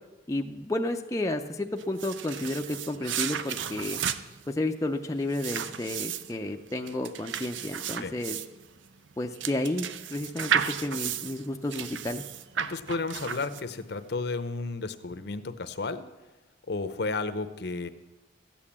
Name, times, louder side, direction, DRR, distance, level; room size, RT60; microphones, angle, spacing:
voice 1, 0.3-4.0 4.5-8.4 9.2-12.2, left 1 dB, 15° left, 3 dB, 0.4 m, -31 dB
sound 1, 1.8-13.9, right 8 dB, 70° right, 0.5 m, -34 dB
voice 2, 12.6-16.0 16.7-17.9, left 3 dB, 55° left, 12 dB, 0.7 m, -32 dB
13.5 x 8.7 x 7.3 m, 1.1 s
head